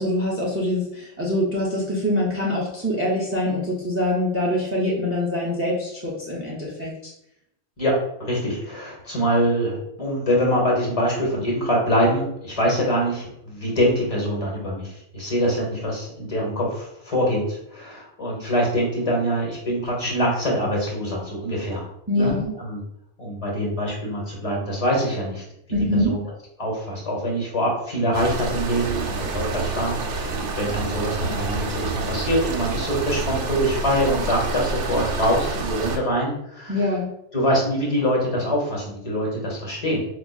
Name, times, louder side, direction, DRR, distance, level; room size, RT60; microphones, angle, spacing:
voice 1, 0.0-7.1 22.1-22.5 25.7-26.1 36.7-37.1, left 1 dB, 20° right, -4 dB, 0.4 m, -24 dB
voice 2, 8.2-21.9 22.1-22.8 23.2-25.4 25.9-26.2 26.6-36.9 37.3-40.1, equal, 35° left, -2 dB, 0.9 m, -24 dB
sound 1, 28.1-36.0, right 4 dB, 85° right, 1.0 m, -28 dB
4.8 x 2.3 x 2.3 m, 0.80 s
omnidirectional pair, 1.2 m